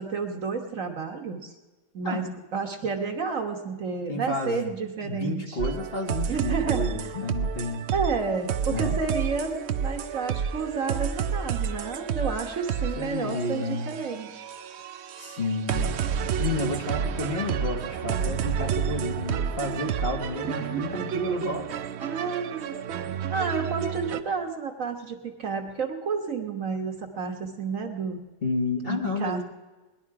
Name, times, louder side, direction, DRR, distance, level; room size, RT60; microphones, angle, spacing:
voice 1, 0.0-1.5 1.9-5.6 6.3-7.2 7.9-14.4 20.6-21.0 22.0-22.8 23.3-28.2 28.8-29.4, right 5 dB, 50° right, 3 dB, 1.7 m, -31 dB
voice 2, 4.1-4.7 5.0-7.9 8.7-9.0 13.0-13.9 15.2-16.0 16.4-21.7 28.4-29.4, left 2 dB, 35° left, 1 dB, 1.5 m, -31 dB
sound 1, 5.6-24.2, right 7 dB, 65° right, 0.6 m, -30 dB
19.5 x 11.5 x 4.8 m, 1.2 s
omnidirectional pair, 1.8 m